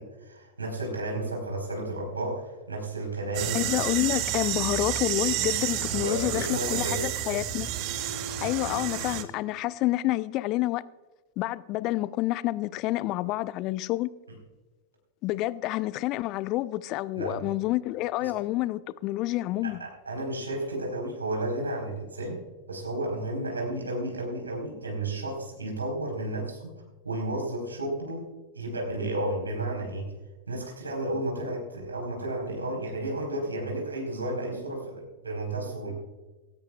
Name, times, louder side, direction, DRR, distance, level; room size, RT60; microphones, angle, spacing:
voice 1, 0.0-3.7 5.9-7.0 17.2-17.5 18.2-18.3 19.6-22.4 22.7-30.1 30.5-35.9, right 1 dB, 75° right, 4.2 m, -32 dB
sound 1, 3.3-9.2, right 11 dB, 40° right, 1.2 m, -30 dB
voice 2, 3.5-7.7 8.4-10.8 11.4-14.1 15.2-19.8, left 17 dB, 40° left, 0.5 m, -28 dB
19.5 x 17.5 x 2.4 m
figure-of-eight pair, 90°, 0 cm